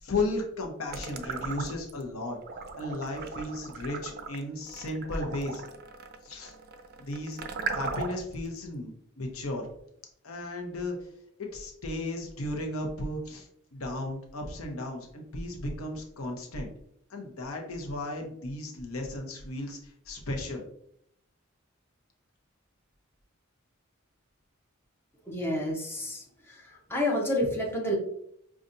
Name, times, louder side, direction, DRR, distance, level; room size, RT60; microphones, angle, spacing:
voice 1, 0.0-2.4 2.8-5.6 6.2-6.5 7.0-7.4 7.7-8.9 9.2-9.7 10.2-11.0 11.4-16.7 17.1-20.7, left 2 dB, 85° left, 2 dB, 0.8 m, -35 dB
sound 1, 0.9-2.0 2.4-8.3, right 4 dB, 50° right, 0.4 m, -37 dB
voice 2, 25.3-26.2 26.9-28.0, left 1 dB, 10° left, -2 dB, 0.8 m, -28 dB
5.4 x 2.4 x 2.6 m, 0.71 s
head